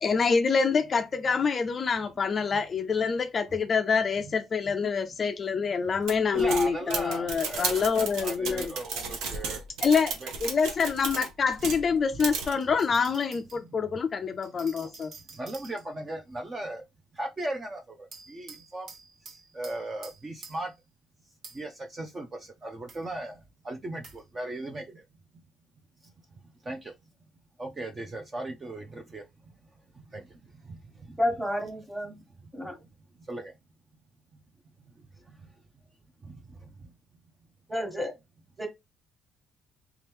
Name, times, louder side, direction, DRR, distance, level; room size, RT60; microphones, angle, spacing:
voice 1, 0.0-8.7 9.8-15.1, left 5 dB, 35° left, 0.3 m, -26 dB
sound 1, 6.1-11.9 12.2-12.5, right 5 dB, 85° right, 0.9 m, -34 dB
voice 2, 6.3-9.6 10.2-10.3 13.7-13.8 14.8-14.9 15.3-16.8 17.1-18.9 19.3-20.7 21.5-25.0 26.0-26.1 26.6-26.9 27.6-29.6 29.9-31.2 32.4-32.9 33.1-33.5 34.8-35.5 36.2-36.9, right 1 dB, 25° right, 0.5 m, -38 dB
sound 2, 9.7-9.8 10.9-11.7 12.3-13.6 14.4-16.1 18.1-20.8 21.4-21.8 22.9-23.1 24.0-24.3, right 4 dB, 55° right, 0.9 m, -50 dB
voice 3, 31.2-32.2 32.5-32.8 37.7-38.1 38.6-38.7, left 1 dB, 5° right, 1.3 m, -30 dB
3.4 x 2.9 x 3.4 m
cardioid pair, 120°, 0 cm